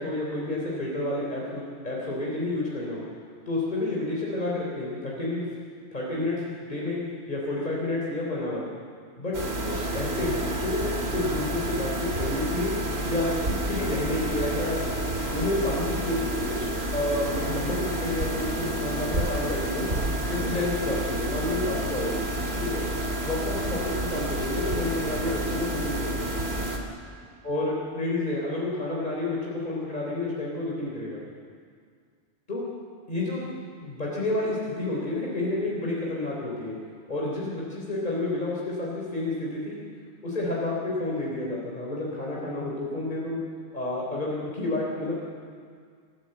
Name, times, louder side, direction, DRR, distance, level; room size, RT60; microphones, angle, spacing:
voice 1, 0.0-3.0 3.5-5.5 5.9-7.0 7.3-8.7 9.2-9.4 9.6-12.7 13.1-14.8 15.3-19.9 20.2-22.2 22.6-22.8 23.2-26.3 27.4-31.2 32.5-32.7 33.1-33.5 33.8-36.8 37.1-39.8 40.2-43.4 43.7-45.1, left 2 dB, 40° left, -4 dB, 3.7 m, -30 dB
sound 1, 9.3-26.8, right 1 dB, 60° right, 2.8 m, -29 dB
28.0 x 14.0 x 7.9 m, 2.1 s
omnidirectional pair, 1.2 m